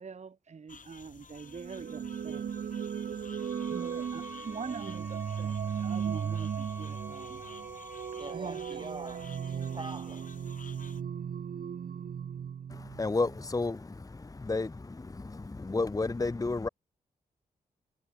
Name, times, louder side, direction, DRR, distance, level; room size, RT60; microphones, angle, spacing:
voice 1, 0.0-2.8 3.7-7.4 8.3-8.8, right 5 dB, 45° right, 1.4 m, -44 dB
sound 1, 0.7-11.0, left 5 dB, 55° left, 4.2 m, -53 dB
sound 2, 1.5-13.4, right 8 dB, 65° right, 1.6 m, -37 dB
sound 3, 3.4-8.4, right 1 dB, 15° right, 7.0 m, -47 dB
voice 2, 8.1-10.3, right 2 dB, 30° right, 5.9 m, -44 dB
voice 3, 12.7-16.7, left 3 dB, 20° left, 1.0 m, -32 dB
supercardioid pair, 55°, 16 cm